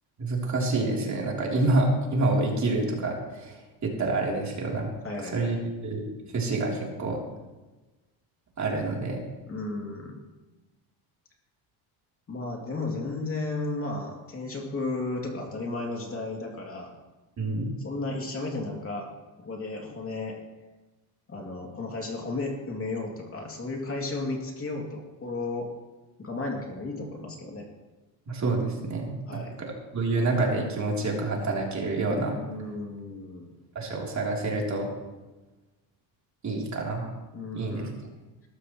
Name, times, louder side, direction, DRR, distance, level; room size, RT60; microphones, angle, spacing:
voice 1, 0.2-4.9 5.3-6.0 6.3-7.2 8.6-9.2 17.4-17.7 28.3-32.4 33.8-34.9 36.4-37.1 37.5-37.9, right 2 dB, 35° right, -2 dB, 3.6 m, -27 dB
voice 2, 5.0-5.5 9.5-10.2 12.3-16.9 17.8-19.1 19.4-20.3 21.3-25.7 26.2-27.6 29.3-29.6 32.3-33.5 37.3-37.9, left 2 dB, 30° left, 0 dB, 2.8 m, -34 dB
20.5 x 13.5 x 3.2 m, 1.2 s
cardioid pair, 130°, 48 cm